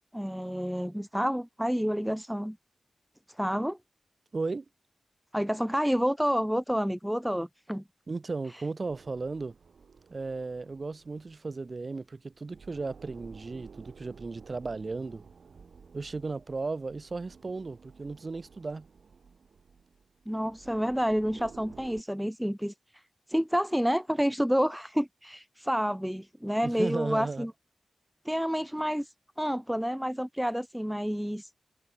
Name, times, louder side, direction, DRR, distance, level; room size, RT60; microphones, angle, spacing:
voice 1, 0.1-2.6 3.4-3.8 5.3-7.8 20.3-22.7 23.3-27.5 28.3-29.1 29.4-31.5, equal, ahead, 0.3 m, -29 dB
voice 2, 4.3-4.7 8.1-9.6 10.1-15.2 15.9-18.9 26.6-27.5, right 3 dB, 45° right, 4.1 m, -35 dB
sound 1, 8.8-12.0 12.3-22.0, right 5 dB, 75° right, 3.4 m, -53 dB
wide cardioid pair, 90°, 0 cm